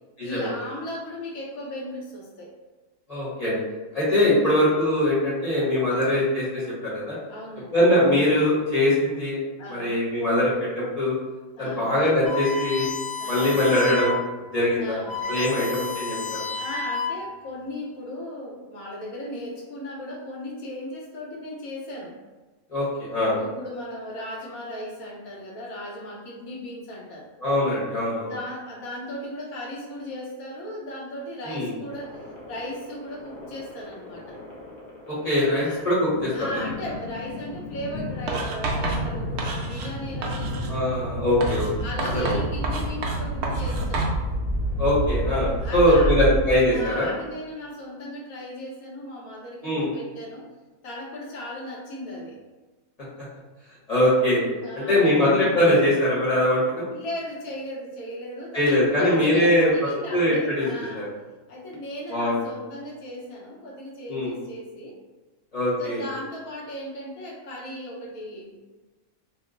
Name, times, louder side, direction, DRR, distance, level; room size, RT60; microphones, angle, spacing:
voice 1, 0.2-2.5 4.4-4.7 5.9-6.0 7.3-7.7 9.6-9.9 11.5-11.9 13.2-13.6 14.8-15.6 16.6-22.1 23.3-27.3 28.1-34.4 35.5-35.8 36.3-41.0 41.8-44.1 45.6-46.3 46.7-50.5 50.8-52.4 54.6-55.3 56.9-61.1 61.5-65.0 65.8-68.6, left 1 dB, 70° left, -3 dB, 1.2 m, -37 dB
voice 2, 3.1-3.6 3.9-7.2 7.7-9.4 9.7-11.1 11.6-12.9 13.3-14.1 14.5-15.0 15.3-16.4 22.7-23.4 27.4-28.3 31.5-31.7 35.1-36.6 40.7-41.7 42.1-42.4 44.8-47.1 49.6-49.9 53.9-54.4 54.7-56.9 58.5-59.7 60.1-60.7 60.9-61.1 62.1-62.4 64.1-64.3 65.5-66.0, left 1 dB, 30° left, -8 dB, 0.9 m, -22 dB
sound 1, 12.3-14.3 14.6-14.7 14.9-17.4, left 4 dB, 5° right, 0.9 m, -31 dB
sound 2, 31.9-47.0, right 1 dB, 55° left, 0.5 m, -31 dB
Writing, 38.3-40.0 40.2-40.8 41.4-44.2, right 3 dB, 70° right, 0.6 m, -29 dB
2.9 x 2.0 x 3.7 m, 1.2 s
omnidirectional pair, 1.6 m